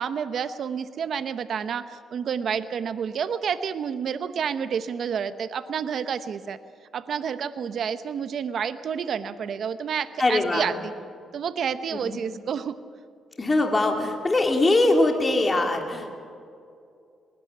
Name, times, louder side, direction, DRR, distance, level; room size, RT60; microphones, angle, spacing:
voice 1, 0.0-6.6 6.9-10.9 11.3-12.8, right 7 dB, 60° right, 12 dB, 0.8 m, -29 dB
voice 2, 10.2-10.7 11.9-12.2 13.4-16.1, left 2 dB, 20° left, 3 dB, 2.7 m, -22 dB
20.0 x 18.0 x 8.2 m, 2.4 s
cardioid pair, 110°, 0 cm